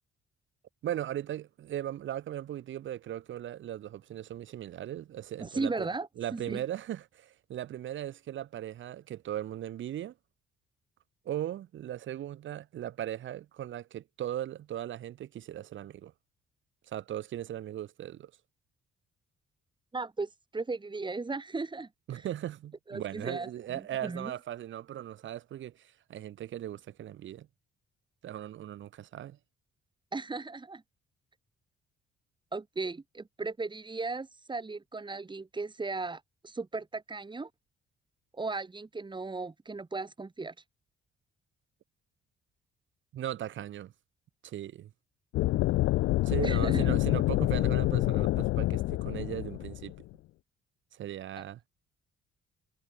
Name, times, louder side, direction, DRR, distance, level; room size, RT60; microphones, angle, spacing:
voice 1, 0.8-5.9 6.2-10.1 11.3-16.1 16.9-18.3 22.1-27.5 28.2-29.4 43.1-43.9 44.4-44.9 46.2-49.9 50.9-51.6, right 12 dB, 75° right, 3.7 m, -38 dB
voice 2, 5.4-6.6 19.9-22.2 22.9-24.3 30.1-30.8 32.5-37.5 38.4-40.5 46.4-46.9 51.4-51.5, right 3 dB, 25° right, 4.5 m, -36 dB
sound 1, 45.3-50.1, left 18 dB, 90° left, 0.7 m, -27 dB
cardioid pair, 90°, 20 cm